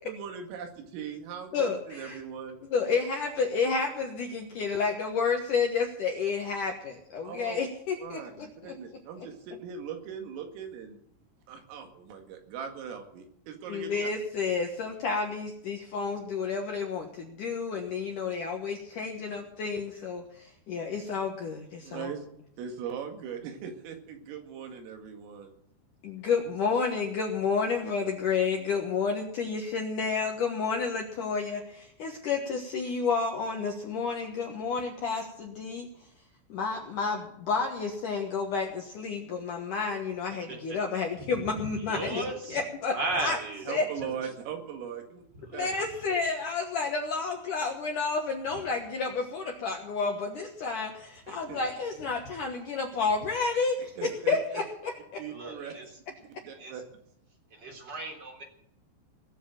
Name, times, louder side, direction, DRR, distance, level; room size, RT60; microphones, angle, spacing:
voice 1, 0.1-2.6 7.2-7.6 8.0-11.0 11.5-13.9 21.8-22.3 22.6-25.5 42.5-42.6 43.6-45.2 45.5-45.7 51.3-51.6 54.0-54.6 55.2-55.7 56.3-56.8, right 7 dB, 85° right, 4 dB, 4.7 m, -40 dB
voice 2, 1.5-2.2 2.6-8.8 13.7-22.1 26.0-36.1 36.5-43.4 43.7-43.9 44.2-44.3 45.5-55.2, left 5 dB, 70° left, 1 dB, 1.9 m, -30 dB
voice 3, 41.9-42.6 42.9-43.7 44.0-44.1 55.3-55.8 56.5-56.7 57.5-58.4, right 2 dB, 25° right, 2 dB, 3.2 m, -35 dB
19.0 x 7.4 x 9.0 m, 0.72 s
omnidirectional pair, 5.8 m